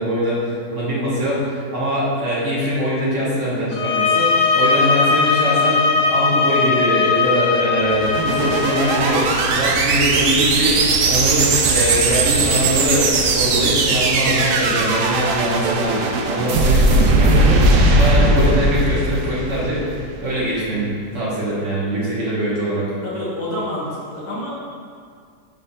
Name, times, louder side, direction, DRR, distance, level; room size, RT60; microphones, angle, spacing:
voice 1, 0.0-19.8 20.2-22.9, equal, 45° right, -7 dB, 1.6 m, -22 dB
sound 1, 3.7-9.1, left 5 dB, 80° left, 1.3 m, -19 dB
sound 2, 7.8-20.2, right 2 dB, 80° right, 1.3 m, -18 dB
voice 2, 23.0-24.5, left 1 dB, 50° left, -7 dB, 1.9 m, -27 dB
7.5 x 3.3 x 5.5 m, 2.1 s
omnidirectional pair, 1.8 m